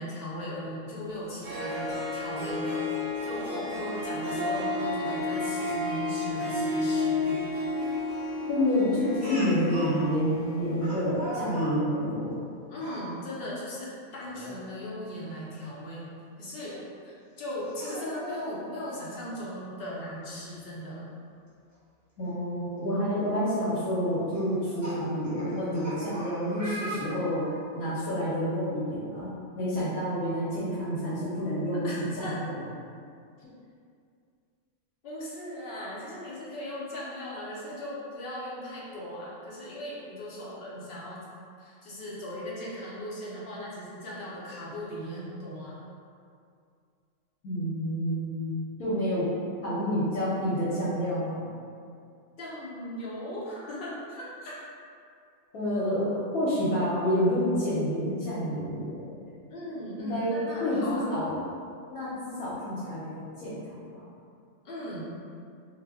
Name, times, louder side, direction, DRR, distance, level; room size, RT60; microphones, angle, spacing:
voice 1, 0.0-7.4 12.7-16.0 16.4-16.8 17.0-21.1 31.8-32.4 35.0-41.2 41.6-45.8 52.4-54.6 59.5-61.2 64.6-65.1, equal, 55° left, -7 dB, 0.7 m, -38 dB
Harp, 1.1-1.2 1.4-10.9, left 2 dB, 75° right, 0.3 m, -31 dB
voice 2, 8.5-12.4 22.2-27.5 27.7-32.5 47.4-48.5 48.8-49.2 49.6-51.5 55.5-59.2 60.0-60.3 60.6-61.4 61.9-63.8, equal, 80° left, -10 dB, 1.1 m, -28 dB
Speech, 9.2-10.0 10.8-11.8 12.7-13.0 14.3-14.5 15.0-15.1 16.7-16.8 17.6-18.5 19.8-19.9 20.3-20.4 22.2-22.3 23.0-23.2 24.3-27.6, right 1 dB, 15° right, 1.0 m, -39 dB
2.5 x 2.1 x 3.4 m, 2.3 s
omnidirectional pair, 1.5 m